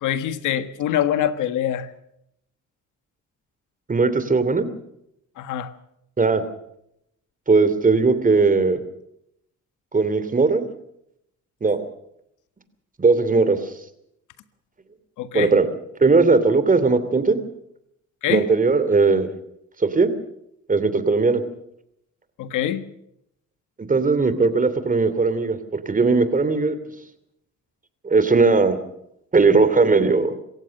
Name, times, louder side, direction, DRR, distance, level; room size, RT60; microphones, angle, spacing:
voice 1, 0.0-1.9 5.4-5.7 15.2-15.5 18.2-18.4 22.4-22.8, left 10 dB, 90° left, 1.6 m, -24 dB
voice 2, 3.9-4.7 6.2-6.4 7.5-8.8 9.9-10.6 11.6-11.8 13.0-13.7 15.3-15.7 16.0-17.4 18.3-19.3 19.8-20.1 20.7-21.4 23.8-25.6 25.8-26.8 28.0-28.8 29.3-30.3, right 4 dB, 25° right, 2.9 m, -18 dB
26.5 x 15.0 x 6.6 m
cardioid pair, 90°, 30 cm